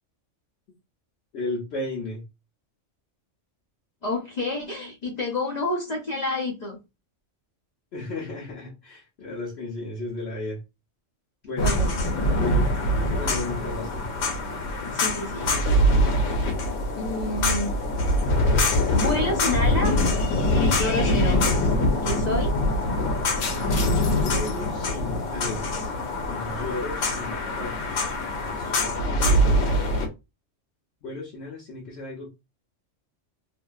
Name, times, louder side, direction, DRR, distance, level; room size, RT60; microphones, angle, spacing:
voice 1, 1.3-2.2 7.9-10.6 11.4-11.8 12.3-12.7 13.1-14.1 24.0-25.9 26.2-28.2 28.4-29.9 31.0-32.3, left 2 dB, 60° left, 1.0 m, -35 dB
voice 2, 4.0-6.8 11.6-11.9 14.8-15.6 17.0-17.8 18.9-19.9 20.5-21.8 22.0-22.6, left 2 dB, 45° left, 0.7 m, -29 dB
sound 1, 11.6-30.1, left 1 dB, 90° left, 1.1 m, -23 dB
2.6 x 2.6 x 2.3 m
omnidirectional pair, 1.3 m